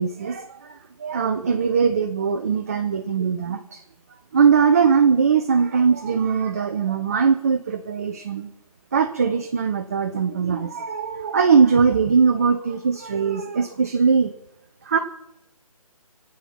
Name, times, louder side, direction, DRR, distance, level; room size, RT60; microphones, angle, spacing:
voice 1, 0.0-3.8 4.3-8.5 8.9-14.3 14.8-15.0, right 6 dB, 25° right, 7 dB, 0.5 m, -20 dB
24.0 x 8.7 x 5.9 m, 0.92 s
figure-of-eight pair, 150°, 19 cm